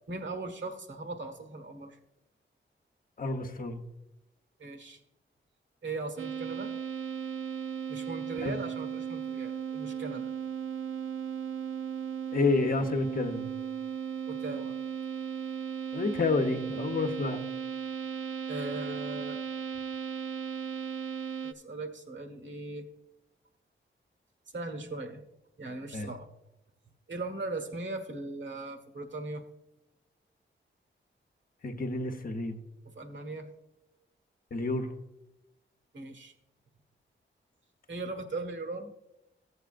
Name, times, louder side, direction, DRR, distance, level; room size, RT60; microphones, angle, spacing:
voice 1, 0.1-2.0 4.6-5.0 5.8-6.7 7.9-10.3 14.3-14.7 18.5-19.4 21.4-22.9 24.5-25.2 25.6-26.3 27.1-29.4 32.9-33.5 35.9-36.3 37.9-38.9, right 2 dB, 65° right, 5 dB, 1.4 m, -39 dB
voice 2, 3.2-3.8 8.4-8.6 12.3-13.5 15.9-17.4 25.9-26.1 31.6-32.6 34.5-34.9, left 3 dB, 45° left, 6 dB, 0.9 m, -29 dB
sound 1, 6.2-21.5, right 8 dB, 85° right, 0.6 m, -36 dB
14.5 x 8.0 x 2.5 m, 0.90 s
wide cardioid pair, 85°, 20 cm